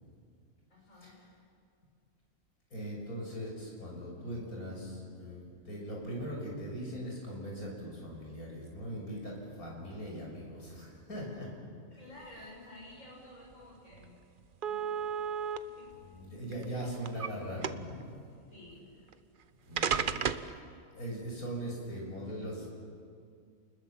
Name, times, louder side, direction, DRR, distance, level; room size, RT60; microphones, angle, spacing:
voice 1, 0.7-1.2 11.9-14.1 14.6-14.9 15.6-16.1 18.5-18.9, left 1 dB, 60° left, -4 dB, 8.0 m, -52 dB
voice 2, 2.7-11.5 16.0-18.0 19.7-20.6 20.9-22.7, equal, 75° left, -2 dB, 7.1 m, -40 dB
sound 1, 13.5-13.6 13.9-14.1 14.6-15.6 16.4-17.3 17.6-18.0 19.1-19.2 19.8-20.5, right 7 dB, 45° right, 0.8 m, -32 dB
30.0 x 21.0 x 7.5 m, 2.3 s
omnidirectional pair, 1.5 m